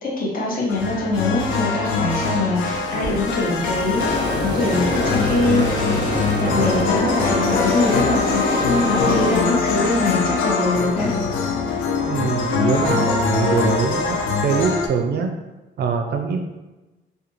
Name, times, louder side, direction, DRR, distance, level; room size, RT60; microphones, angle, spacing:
voice 1, 0.0-5.8 6.4-11.1, left 2 dB, 45° left, -3 dB, 0.8 m, -23 dB
sound 1, 0.7-14.9, left 4 dB, 80° left, 0.4 m, -23 dB
sound 2, 2.6-9.0, right 1 dB, 20° right, 0.7 m, -35 dB
sound 3, 3.9-9.4, left 1 dB, 65° left, 1.2 m, -25 dB
voice 2, 12.1-15.3 15.8-16.4, right 5 dB, 55° right, 4 dB, 0.4 m, -23 dB
2.4 x 2.2 x 2.9 m, 1.1 s
cardioid pair, 90°, 20 cm